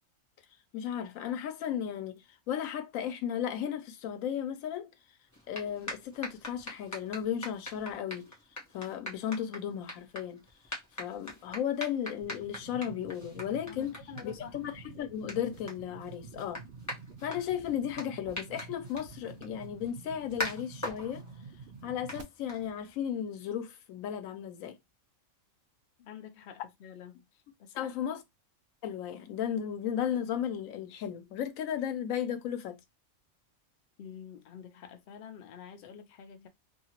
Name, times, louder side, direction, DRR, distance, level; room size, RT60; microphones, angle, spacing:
voice 1, 0.7-4.9 5.5-8.3 8.7-10.4 11.0-14.0 14.2-16.7 17.2-21.2 21.8-24.8 27.7-28.2 28.8-32.8, left 9 dB, 85° left, 1.0 m, -35 dB
sound 1, 5.3-23.1, left 1 dB, 15° left, 0.9 m, -44 dB
sound 2, 12.2-22.2, right 5 dB, 65° right, 0.6 m, -49 dB
voice 2, 13.7-14.6 26.0-27.2 27.6-28.2 34.0-36.5, left 8 dB, 55° left, 0.7 m, -48 dB
2.8 x 2.7 x 2.8 m
omnidirectional pair, 1.4 m